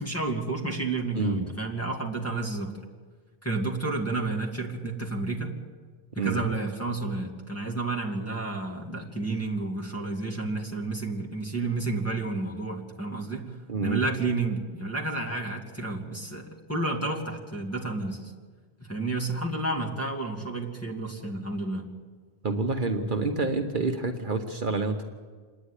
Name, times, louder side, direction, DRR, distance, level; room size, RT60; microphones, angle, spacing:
voice 1, 0.0-2.7 3.4-5.6 6.1-13.5 13.8-18.3 18.8-21.9, right 3 dB, 15° left, 0 dB, 2.3 m, -31 dB
voice 2, 1.1-1.5 6.2-6.4 13.7-14.0 22.4-25.0, right 3 dB, 50° right, 4 dB, 1.3 m, -28 dB
26.5 x 10.0 x 9.9 m, 1.5 s
omnidirectional pair, 1.1 m